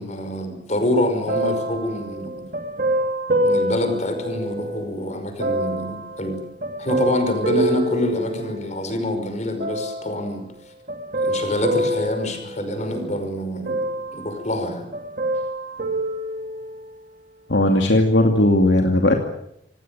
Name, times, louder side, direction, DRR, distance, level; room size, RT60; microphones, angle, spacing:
voice 1, 0.0-2.5 3.4-6.4 6.8-10.5 11.2-14.9, left 1 dB, 35° left, 7 dB, 5.4 m, -26 dB
sound 1, 1.3-4.9 5.4-8.9 9.6-10.3 10.9-13.2 13.6-14.7 14.9-17.0 17.6-17.7, right 1 dB, 40° right, 2.7 m, -26 dB
voice 2, 17.5-19.2, left 1 dB, 65° left, 3 dB, 2.5 m, -17 dB
27.0 x 18.0 x 9.1 m, 0.78 s
head